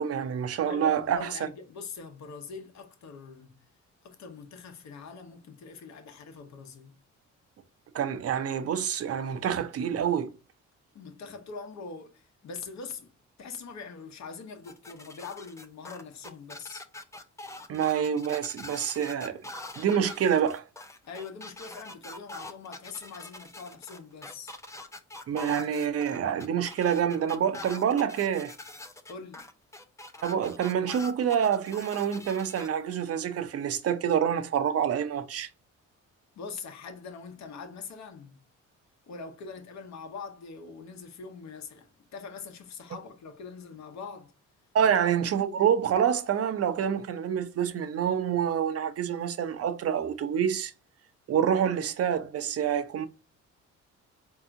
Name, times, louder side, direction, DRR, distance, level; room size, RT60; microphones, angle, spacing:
voice 1, 0.0-1.4 7.9-10.3 17.7-19.4 19.8-20.6 25.3-28.5 30.2-35.5 44.7-50.7 51.3-53.1, right 8 dB, 50° right, 0.6 m, -27 dB
voice 2, 0.7-3.6 4.0-6.9 10.9-13.1 13.4-16.8 21.0-24.6 29.1-29.5 36.4-38.4 39.1-44.3 44.8-45.0, left 5 dB, 65° left, 1.0 m, -43 dB
sound 1, 14.6-32.7, left 2 dB, 10° left, 0.5 m, -44 dB
4.6 x 2.8 x 2.5 m
cardioid pair, 90°, 30 cm